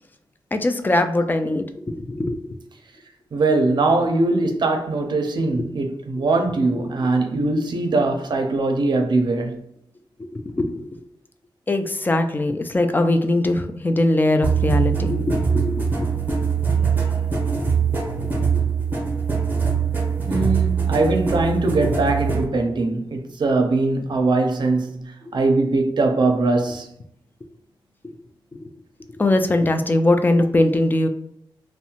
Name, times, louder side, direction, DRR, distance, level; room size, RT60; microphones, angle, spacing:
voice 1, 0.5-2.6 6.8-6.9 10.2-11.0 11.7-16.2 18.2-18.3 18.5-18.7 25.2-25.4 29.2-31.1, left 2 dB, 20° left, 0.3 m, -21 dB
voice 2, 3.3-9.6 20.3-26.9, right 3 dB, 60° right, 0.5 m, -21 dB
sound 1, 14.4-22.5, right 6 dB, 25° right, 0.7 m, -22 dB
2.7 x 2.1 x 2.8 m
wide cardioid pair, 95°, 9 cm